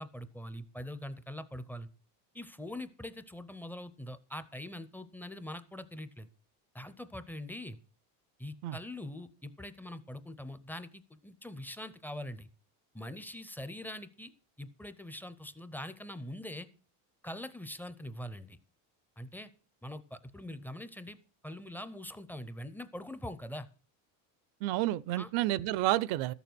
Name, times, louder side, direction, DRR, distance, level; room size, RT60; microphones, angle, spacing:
voice 1, 0.0-1.9 2.3-6.3 6.7-7.8 8.4-12.5 12.9-14.3 14.6-16.7 17.2-18.6 19.2-19.5 19.8-21.2 21.4-23.7 25.2-25.3, left 1 dB, 5° left, 0.5 m, -43 dB
voice 2, 24.6-26.3, right 15 dB, 65° right, 0.6 m, -30 dB
13.5 x 7.1 x 6.0 m
cardioid pair, 145°, 42 cm